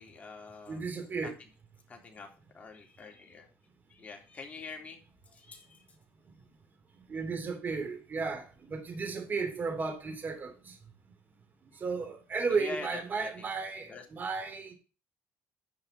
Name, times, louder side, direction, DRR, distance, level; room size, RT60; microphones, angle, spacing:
voice 1, 0.0-0.8 1.2-1.3 1.9-2.3 2.5-3.5 3.9-5.0 5.3-5.9 12.5-13.5 13.9-14.1, left 4 dB, 30° left, 3.5 m, -45 dB
voice 2, 0.7-1.3 7.1-10.8 11.8-14.7, right 4 dB, 35° right, 3.2 m, -34 dB
10.5 x 5.8 x 5.5 m
cardioid pair, 105°, 5 cm